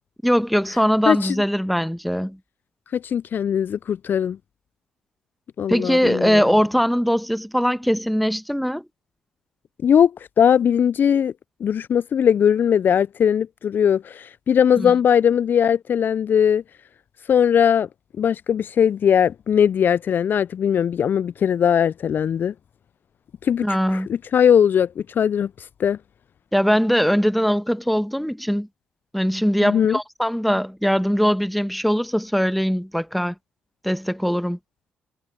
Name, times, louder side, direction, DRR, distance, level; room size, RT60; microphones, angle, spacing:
voice 1, 0.2-2.4 5.7-8.8 14.8-14.9 23.6-24.1 26.5-28.7 29.1-33.3 33.8-34.6, equal, ahead, 1.4 m, -21 dB
voice 2, 1.1-1.4 2.9-4.4 5.6-6.4 9.8-10.1 10.4-11.3 11.6-16.6 17.3-17.9 18.2-22.5 23.4-26.0 29.6-30.0, left 8 dB, 50° left, 0.4 m, -19 dB
hypercardioid pair, 45°, 4 cm